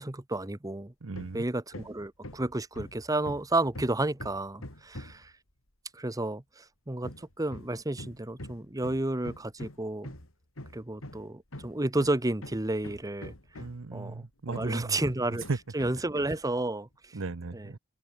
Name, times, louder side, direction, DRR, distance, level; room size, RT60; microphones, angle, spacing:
voice 1, 0.0-0.9 1.3-5.3 5.9-10.1 10.7-13.3 13.9-15.4 15.7-17.2 17.5-17.7, right 2 dB, 15° right, 1.0 m, -31 dB
voice 2, 1.0-1.4 13.5-15.0 15.3-15.6 17.1-17.8, right 3 dB, 70° right, 0.8 m, -36 dB
Hammer, 1.1-1.4 1.7-5.3 7.0-14.0 14.5-16.4, left 1 dB, 90° left, 4.9 m, -44 dB
open air
head